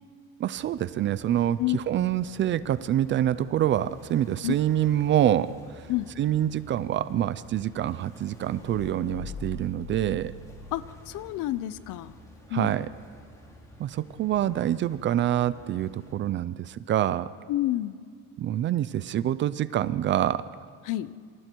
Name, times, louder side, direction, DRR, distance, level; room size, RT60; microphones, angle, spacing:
voice 1, 0.4-5.9 6.2-10.3 12.5-12.9 13.8-17.3 18.4-20.5, right 11 dB, 35° right, 16 dB, 0.5 m, -26 dB
sound 1, 0.5-16.1, equal, 10° left, 3.9 m, -50 dB
voice 2, 1.6-2.1 4.4-4.5 5.9-6.1 10.7-12.1 12.5-12.8 17.5-18.0 20.9-21.1, left 15 dB, 60° left, 16 dB, 0.8 m, -29 dB
sound 2, 8.6-11.5, left 3 dB, 80° left, 4.4 m, -41 dB
28.0 x 27.0 x 4.6 m, 2.2 s
cardioid pair, 165°, 35 cm